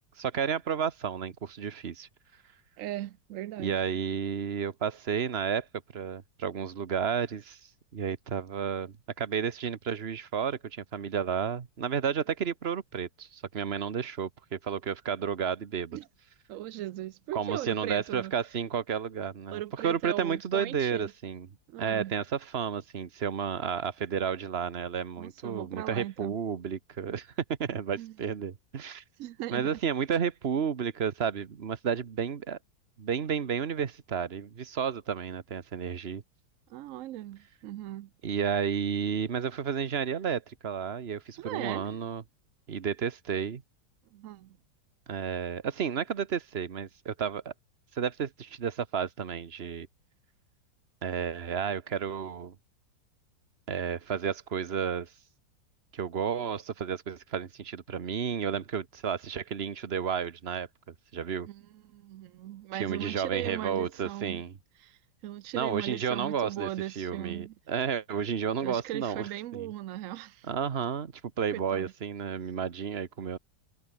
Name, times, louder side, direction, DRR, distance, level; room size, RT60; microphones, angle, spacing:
voice 1, 0.0-2.1 3.6-5.7 5.9-7.6 7.9-16.0 17.3-21.5 21.8-27.3 27.6-29.0 29.5-32.6 33.0-36.2 38.2-42.2 42.7-43.6 45.1-47.5 47.9-49.9 51.0-52.5 53.7-55.1 55.9-61.5 62.7-64.6 65.5-66.7 67.0-69.7 70.5-73.4, right 7 dB, 40° right, 1.2 m, -32 dB
voice 2, 2.8-3.8 15.9-16.1 16.5-18.3 19.5-21.1 21.7-22.1 25.2-26.4 28.0-28.1 29.2-29.7 36.7-38.1 41.4-42.0 44.1-44.6 61.4-64.4 64.8-67.5 68.6-70.5 71.5-71.9, right 14 dB, 85° right, 0.7 m, -38 dB
omnidirectional pair, 2.0 m